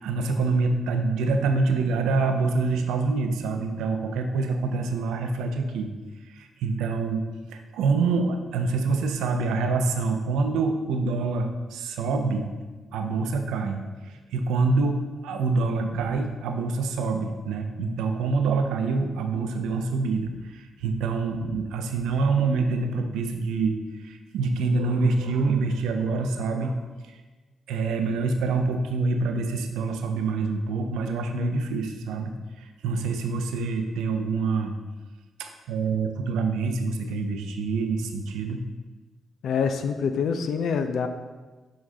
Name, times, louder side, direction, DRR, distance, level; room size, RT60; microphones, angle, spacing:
voice 1, 0.0-5.9 6.3-7.2 7.5-12.5 12.9-26.8 27.7-32.3 32.6-34.8 35.4-38.6, right 4 dB, 75° right, 6 dB, 0.5 m, -26 dB
voice 2, 39.4-41.1, left 6 dB, 65° left, 8 dB, 0.4 m, -25 dB
6.4 x 4.0 x 3.7 m, 1.3 s
hypercardioid pair, 40°, 0 cm